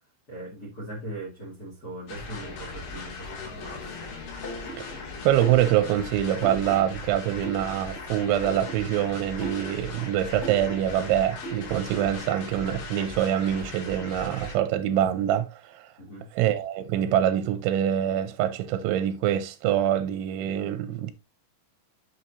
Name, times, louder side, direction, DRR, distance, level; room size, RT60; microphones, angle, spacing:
voice 1, 0.3-4.1 16.0-16.3, right 1 dB, 50° left, 1.0 m, -40 dB
sound 1, 2.1-14.6, left 3 dB, 80° left, 5.1 m, -39 dB
sound 2, 4.4-12.2, right 3 dB, 20° left, 2.2 m, -40 dB
voice 2, 5.2-15.9 16.4-21.1, right 11 dB, 90° right, 3.1 m, -25 dB
9.0 x 6.5 x 2.7 m
omnidirectional pair, 5.4 m